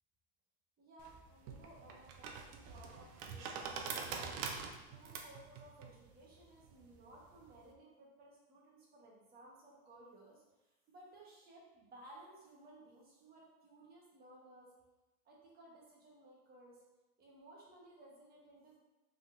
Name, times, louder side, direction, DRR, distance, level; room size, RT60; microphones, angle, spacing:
voice 1, 0.8-3.6 4.1-14.7 15.2-16.8 17.2-18.8, right 1 dB, 30° right, -4 dB, 1.4 m, -58 dB
sound 1, 1.0-7.7, right 5 dB, 60° right, 0.8 m, -45 dB
4.9 x 3.9 x 2.7 m, 1.1 s
supercardioid pair, 125°, 30 cm